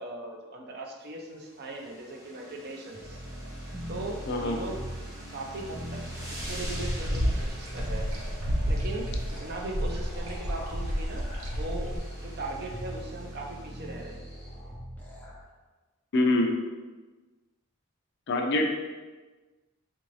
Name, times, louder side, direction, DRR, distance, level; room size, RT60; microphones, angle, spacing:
voice 1, 0.0-3.2 3.9-4.8 5.3-6.0 6.3-8.1 8.7-9.1 9.4-11.3 11.6-11.9 12.2-14.2, right 2 dB, 45° right, 0 dB, 0.5 m, -39 dB
sound 1, 1.2-14.4, right 1 dB, 15° right, 1.0 m, -47 dB
sound 2, 2.9-15.4, equal, 10° left, 0.6 m, -41 dB
voice 2, 4.3-4.6 16.1-16.5 18.3-18.7, left 2 dB, 50° left, 3 dB, 0.4 m, -24 dB
sound 3, 6.4-12.0, equal, 75° right, 0.8 m, -30 dB
3.7 x 2.5 x 3.1 m, 1.3 s
head